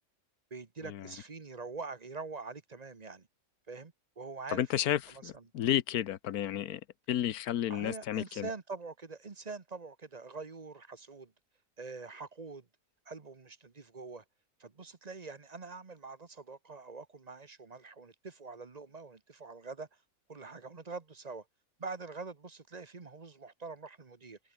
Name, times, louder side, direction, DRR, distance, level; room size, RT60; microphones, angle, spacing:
voice 1, 0.5-3.3 3.7-5.5 7.7-11.3 11.8-12.7 13.0-14.2 14.6-19.9 20.3-21.4 21.8-24.4, right 4 dB, 30° right, 1.2 m, -44 dB
voice 2, 4.5-6.8 7.1-8.5, left 11 dB, 85° left, 1.3 m, -31 dB
omnidirectional pair, 1.5 m